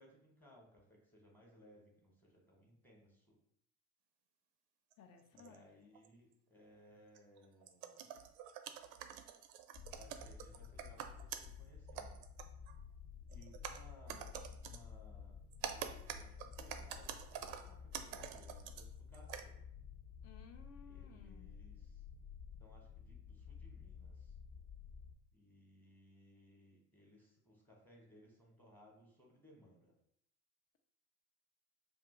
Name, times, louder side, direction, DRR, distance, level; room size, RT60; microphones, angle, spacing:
voice 1, 0.0-3.4 5.3-8.3 9.9-12.2 13.3-14.3 14.6-19.6 20.8-22.0 22.6-24.3 25.3-30.0, equal, 5° left, -2 dB, 1.0 m, -63 dB
sound 1, 4.9-5.0 5.4-5.6 5.9-6.1 7.2-11.5 11.9-12.8 13.3-14.8 15.5-18.9 19.1-19.4, right 9 dB, 60° right, 0.5 m, -47 dB
voice 2, 5.0-5.9 20.2-21.5, left 6 dB, 35° left, 5 dB, 0.5 m, -59 dB
sound 2, 9.7-25.1, left 7 dB, 65° left, 0.9 m, -53 dB
2.6 x 2.4 x 3.6 m, 0.71 s
hypercardioid pair, 70°, 45 cm